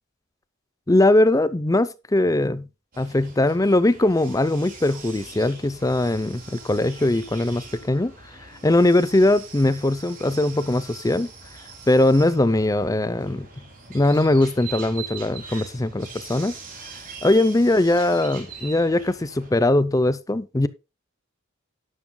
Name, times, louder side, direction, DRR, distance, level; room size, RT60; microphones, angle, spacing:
voice 1, 0.9-2.7 3.0-8.1 8.4-11.3 11.9-13.5 13.9-16.6 17.2-20.7, left 1 dB, 15° left, 0.5 m, -20 dB
sound 1, 2.9-19.5, right 5 dB, 45° right, 4.3 m, -42 dB
12.0 x 11.0 x 2.3 m
head